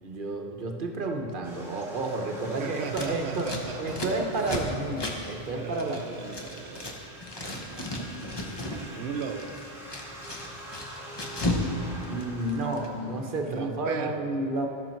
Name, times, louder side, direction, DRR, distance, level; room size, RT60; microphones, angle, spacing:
voice 1, 0.0-3.5 3.8-6.4 12.1-14.7, right 2 dB, 55° right, 3 dB, 1.0 m, -31 dB
sound 1, 1.4-13.5, equal, 20° right, 2.7 m, -45 dB
voice 2, 2.5-4.2 5.5-7.0 7.4-7.9 8.9-9.6 13.5-14.4, right 6 dB, 80° right, 8 dB, 0.9 m, -37 dB
Scissors, 2.9-7.0 7.2-8.8 9.1-11.7 11.9-12.9, left 1 dB, 25° left, 0.8 m, -34 dB
13.0 x 6.3 x 4.4 m, 2.5 s
omnidirectional pair, 1.1 m